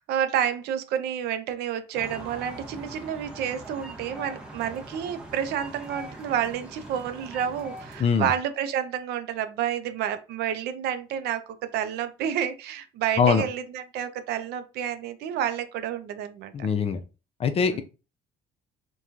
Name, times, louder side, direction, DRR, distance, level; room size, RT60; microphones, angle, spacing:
voice 1, 0.0-16.5 17.7-17.8, right 9 dB, 75° right, 0.4 m, -29 dB
sound 1, 1.9-8.0, right 2 dB, 5° right, 0.6 m, -42 dB
voice 2, 8.0-8.3 13.2-13.4 16.5-17.0 17.4-17.8, left 6 dB, 35° left, 0.4 m, -22 dB
3.0 x 2.2 x 2.4 m
cardioid pair, 110°, 17 cm